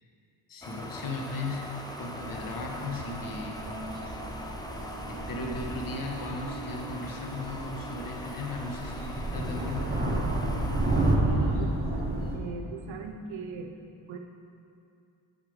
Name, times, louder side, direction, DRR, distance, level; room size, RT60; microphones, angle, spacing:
voice 1, 0.5-3.7 5.1-9.9, left 2 dB, 45° left, 1 dB, 1.1 m, -37 dB
sound 1, 0.6-11.2, left 1 dB, 10° left, 0.6 m, -41 dB
sound 2, 2.2-12.4, right 2 dB, 20° right, 1.5 m, -31 dB
sound 3, 2.6-10.0, right 4 dB, 35° right, 1.4 m, -46 dB
voice 2, 11.2-11.9 12.3-13.8 14.1-14.2, right 4 dB, 75° right, 4 dB, 0.8 m, -39 dB
7.9 x 5.7 x 5.1 m, 2.6 s
cardioid pair, 100°, 46 cm